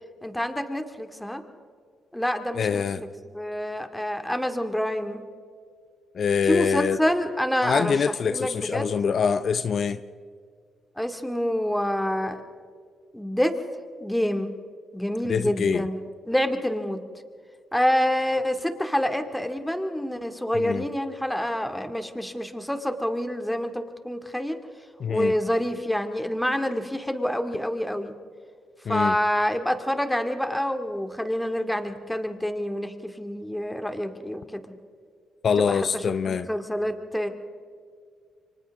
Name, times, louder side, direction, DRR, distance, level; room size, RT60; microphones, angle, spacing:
voice 1, 0.2-1.4 2.1-5.2 6.4-8.0 8.3-8.9 11.0-12.4 13.1-13.6 14.0-14.5 14.9-17.0 17.7-24.6 25.1-28.1 28.9-34.6 35.6-35.8 36.3-37.3, equal, 5° left, 2.3 m, -27 dB
voice 2, 2.5-3.0 6.1-7.0 7.6-10.0 15.3-15.9 20.5-20.8 25.0-25.3 28.9-29.2 35.4-36.5, left 6 dB, 60° left, 0.6 m, -24 dB
30.0 x 24.5 x 3.7 m
supercardioid pair, 60°, 0 cm